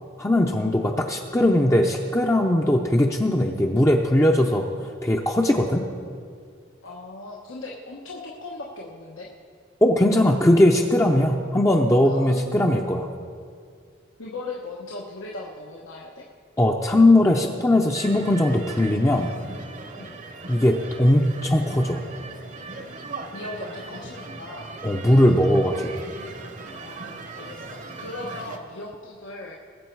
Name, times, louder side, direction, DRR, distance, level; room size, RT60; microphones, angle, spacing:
voice 1, 0.2-5.9 9.8-13.1 16.6-19.3 20.5-22.0 24.8-25.9, left 1 dB, 15° left, 1 dB, 0.5 m, -19 dB
voice 2, 6.8-9.3 12.0-12.7 14.2-16.3 19.9-20.1 23.3-24.7 26.8-29.6, left 2 dB, 85° left, -2 dB, 1.2 m, -38 dB
sound 1, 17.9-28.6, right 3 dB, 40° right, 0.8 m, -39 dB
20.5 x 7.7 x 4.6 m, 2.1 s
head